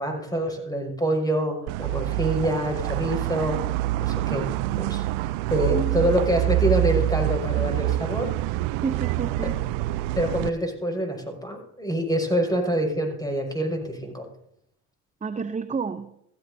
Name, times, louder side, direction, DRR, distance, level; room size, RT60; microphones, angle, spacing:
voice 1, 0.0-3.6 4.0-4.5 4.8-8.3 10.2-14.3, right 1 dB, 10° left, 2 dB, 5.8 m, -26 dB
sound 1, 1.7-10.5, right 16 dB, 70° right, 0.5 m, -26 dB
voice 2, 5.6-6.1 8.8-9.6 15.2-16.1, right 5 dB, 15° right, 11 dB, 0.7 m, -30 dB
15.5 x 15.0 x 2.7 m, 0.73 s
hypercardioid pair, 60°, 42 cm